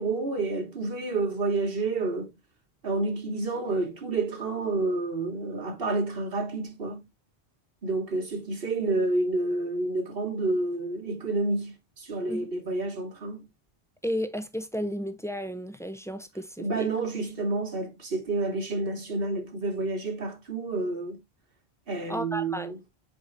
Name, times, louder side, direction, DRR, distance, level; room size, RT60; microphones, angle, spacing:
voice 1, 0.0-2.3 2.8-7.0 7.8-13.4 16.6-21.2 21.9-22.8, right 3 dB, 65° right, 1.7 m, -29 dB
voice 2, 14.0-16.9 22.1-22.7, equal, 5° left, 0.5 m, -33 dB
7.8 x 4.7 x 2.6 m
omnidirectional pair, 1.0 m